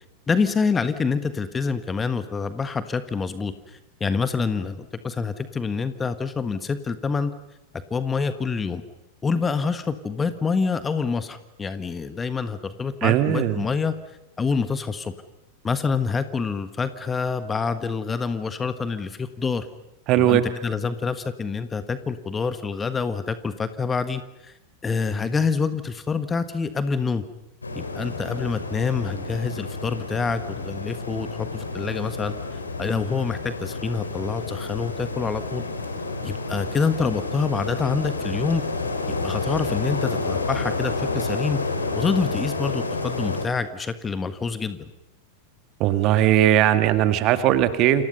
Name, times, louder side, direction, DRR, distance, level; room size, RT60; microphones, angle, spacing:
voice 1, 0.3-7.3 7.9-8.8 9.2-13.9 14.4-15.1 15.6-19.7 20.1-24.5 24.8-27.2 27.7-35.6 36.2-38.6 39.1-41.6 41.9-44.9, left 5 dB, 15° left, 11 dB, 1.5 m, -26 dB
voice 2, 13.0-13.6 20.1-20.5 45.8-48.0, right 12 dB, 40° right, 10 dB, 2.0 m, -19 dB
sound 1, 27.6-43.5, left 3 dB, 75° left, 3.3 m, -30 dB
29.0 x 27.5 x 5.5 m, 0.92 s
figure-of-eight pair, 90°, 0 cm